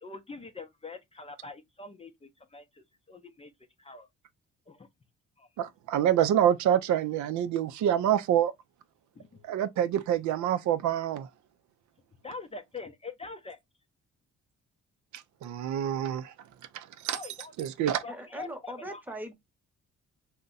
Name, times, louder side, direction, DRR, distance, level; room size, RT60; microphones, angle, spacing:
voice 1, 0.0-3.5 3.8-4.1 4.7-4.9 5.4-5.5 9.2-9.4 12.2-13.6 17.1-17.7 18.0-19.0, left 4 dB, 20° left, 0.5 m, -44 dB
voice 2, 5.6-8.5 9.4-11.3 15.1-16.3 16.7-17.2 17.6-18.0, right 10 dB, 75° right, 0.5 m, -27 dB
voice 3, 18.1-19.3, right 1 dB, 5° right, 0.8 m, -40 dB
2.6 x 2.1 x 3.8 m
cardioid pair, 90°, 30 cm